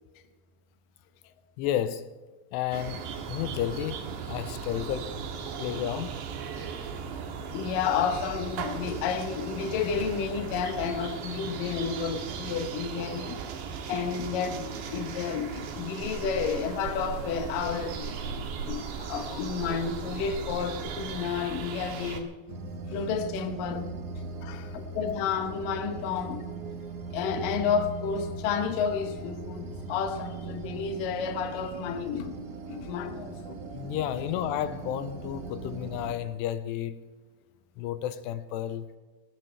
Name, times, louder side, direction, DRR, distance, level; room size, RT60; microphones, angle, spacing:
voice 1, 1.6-2.1 2.5-5.2 5.6-6.2 24.4-24.8 33.7-37.0 37.8-38.9, left 11 dB, 85° left, 2.9 m, -32 dB
sound 1, 2.7-22.2, right 6 dB, 90° right, 3.7 m, -37 dB
voice 2, 6.6-6.9 7.5-13.4 13.9-22.3 22.9-24.0 24.7-26.5 27.1-33.6, left 6 dB, 65° left, 2.5 m, -31 dB
sound 2, 22.5-36.1, right 4 dB, 60° right, 2.3 m, -39 dB
19.5 x 19.0 x 3.3 m
omnidirectional pair, 4.8 m